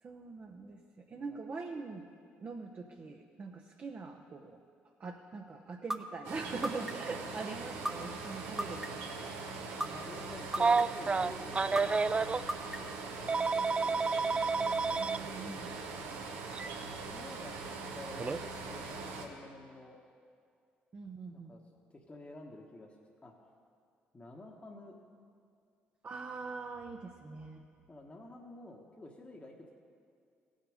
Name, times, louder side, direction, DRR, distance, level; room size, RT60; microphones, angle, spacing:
voice 1, 0.0-2.1 2.4-4.6 5.0-9.3 15.0-16.2 20.9-21.5 26.0-27.6, right 4 dB, 45° right, 2 dB, 0.9 m, -43 dB
voice 2, 1.1-1.4 7.3-7.5 9.8-12.0 13.0-13.5 15.1-16.1 16.9-17.5 17.9-20.0 21.3-21.6 21.9-22.9 23.2-23.3 24.1-25.0 27.9-29.7, left 2 dB, 30° left, -1 dB, 1.3 m, -50 dB
sound 1, 5.9-6.0 6.6-7.1 7.8-7.9 8.6-9.1 9.8-9.9 10.5-11.0 11.7-11.8 12.5-13.0, right 1 dB, 10° right, 0.9 m, -34 dB
sound 2, 6.2-19.3, right 4 dB, 85° right, 1.2 m, -42 dB
Telephone, 10.5-12.4 13.3-15.2 16.5-16.7 18.2-18.4, right 4 dB, 25° right, 0.3 m, -29 dB
16.5 x 6.6 x 5.0 m, 2.3 s
supercardioid pair, 55°, 4 cm